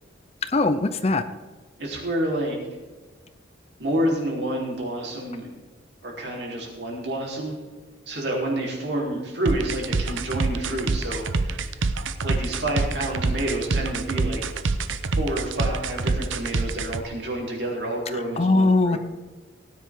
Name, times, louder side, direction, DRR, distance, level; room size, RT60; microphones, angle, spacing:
voice 1, 0.5-1.2 18.4-19.0, left 2 dB, 30° left, 11 dB, 0.5 m, -20 dB
voice 2, 1.8-2.6 3.8-5.5 6.0-7.6 8.1-11.8 12.2-14.4 15.2-19.0, right 1 dB, 60° right, -2 dB, 3.6 m, -28 dB
sound 1, 9.5-17.0, right 3 dB, 80° right, 0.7 m, -25 dB
17.5 x 9.8 x 3.7 m, 1.3 s
head